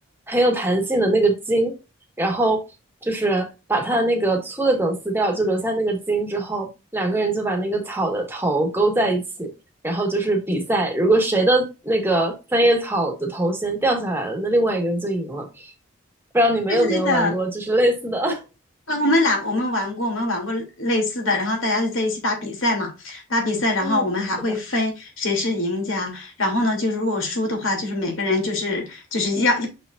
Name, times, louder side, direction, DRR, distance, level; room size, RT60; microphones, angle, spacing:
voice 1, 0.3-1.7 2.2-2.6 3.0-9.5 9.8-15.7 16.3-18.4 23.8-24.0, right 1 dB, 10° right, 1.6 m, -22 dB
voice 2, 16.7-17.3 18.9-29.7, left 2 dB, 65° left, 3.0 m, -23 dB
7.1 x 5.9 x 2.6 m
head